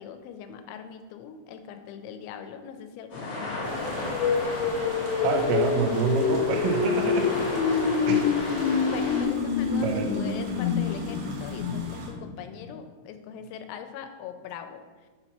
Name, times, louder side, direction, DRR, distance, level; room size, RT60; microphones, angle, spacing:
voice 1, 0.0-4.0 8.9-14.8, left 8 dB, 90° left, 8 dB, 2.9 m, -41 dB
sound 1, 3.1-9.2, left 2 dB, 55° left, 1.4 m, -34 dB
sound 2, 3.6-12.1, right 2 dB, 70° right, 2.8 m, -44 dB
sound 3, 3.8-12.7, left 5 dB, 70° left, 2.7 m, -27 dB
voice 2, 5.2-7.3 8.1-8.3 9.8-10.1, right 5 dB, 85° right, 2 dB, 3.0 m, -27 dB
7.2 x 3.0 x 5.7 m, 1.4 s
omnidirectional pair, 5.3 m